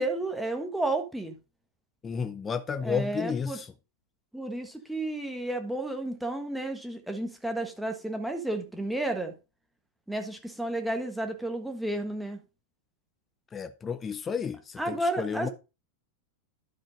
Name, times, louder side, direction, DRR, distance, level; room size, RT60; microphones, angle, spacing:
voice 1, 0.0-1.4 2.8-3.6 4.3-9.4 10.1-12.4 14.8-15.5, right 1 dB, ahead, 1.4 m, -32 dB
voice 2, 2.0-3.7 13.5-15.5, left 6 dB, 20° left, 0.6 m, -32 dB
11.5 x 5.1 x 4.0 m
figure-of-eight pair, 90°, 0 cm